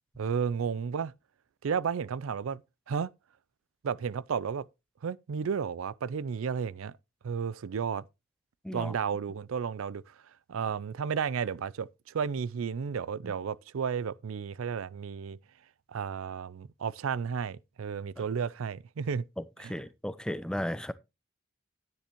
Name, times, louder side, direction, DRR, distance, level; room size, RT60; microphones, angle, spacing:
voice 1, 0.2-1.1 1.6-2.6 2.9-3.1 3.8-4.7 5.0-6.9 7.2-8.1 8.7-10.1 10.5-15.4 15.9-19.2 19.6-19.7, right 6 dB, 85° right, 0.4 m, -32 dB
voice 2, 19.4-20.9, equal, 5° left, 0.4 m, -35 dB
10.0 x 9.9 x 3.0 m
head